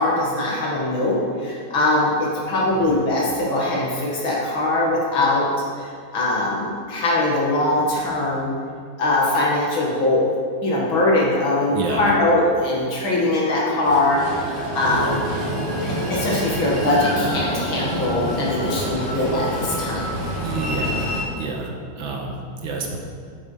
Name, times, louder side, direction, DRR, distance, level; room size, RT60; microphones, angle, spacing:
voice 1, 0.0-5.5 5.8-5.9 6.1-8.5 9.0-10.2 10.6-15.2 16.1-20.2, left 2 dB, 85° left, -4 dB, 2.7 m, -21 dB
voice 2, 11.7-12.1 14.8-15.2 20.4-21.1 21.4-23.0, right 3 dB, 80° right, 1 dB, 2.1 m, -29 dB
Train, 13.8-21.2, right 1 dB, 35° right, 2.9 m, -27 dB
9.6 x 8.6 x 5.7 m, 2.1 s
omnidirectional pair, 2.2 m